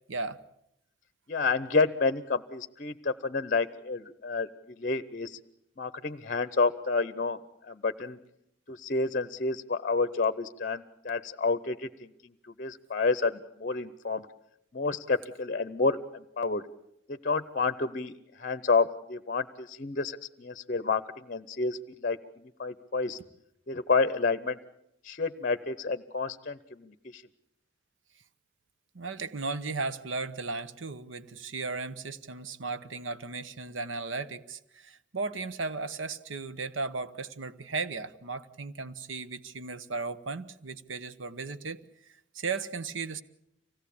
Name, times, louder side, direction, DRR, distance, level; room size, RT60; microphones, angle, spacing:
voice 1, 0.1-0.4 28.9-43.2, right 4 dB, 85° right, 13 dB, 1.0 m, -36 dB
voice 2, 1.3-4.5 4.8-5.4 5.8-7.4 7.6-8.2 8.7-12.3 12.6-14.3 14.7-16.6 17.1-18.1 18.4-23.2 23.7-24.6 25.0-27.2, left 4 dB, 45° left, 12 dB, 0.8 m, -29 dB
25.0 x 17.5 x 8.5 m, 0.80 s
head